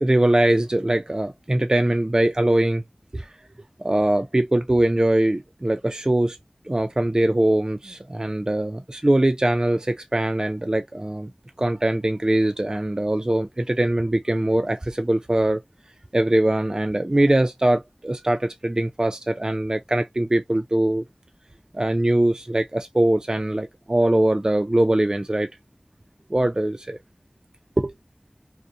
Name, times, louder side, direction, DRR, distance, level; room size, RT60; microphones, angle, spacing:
voice 1, 0.0-2.8 3.1-3.3 3.8-6.4 6.7-11.3 11.6-15.6 16.1-21.0 21.7-25.5 26.3-27.0 27.8-27.9, right 1 dB, 30° right, 0.3 m, -22 dB
2.5 x 2.0 x 2.6 m
wide cardioid pair, 40°, 2 cm